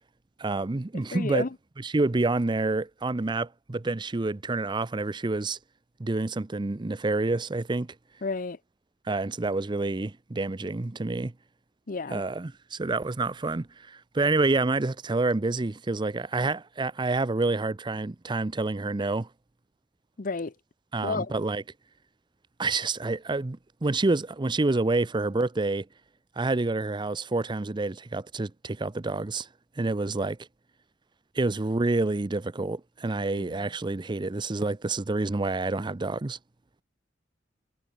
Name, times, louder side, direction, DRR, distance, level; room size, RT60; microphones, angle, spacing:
voice 1, 0.4-1.5 1.8-5.6 6.0-7.9 9.1-11.3 12.1-19.3 20.9-21.6 22.6-25.9 26.4-29.5 29.8-30.4 31.3-36.4, right 2 dB, 25° right, 0.6 m, -28 dB
voice 2, 0.9-1.5 8.2-8.6 11.9-12.2 20.2-20.5 21.0-21.3 33.3-33.6, left 4 dB, 50° left, 0.7 m, -31 dB
head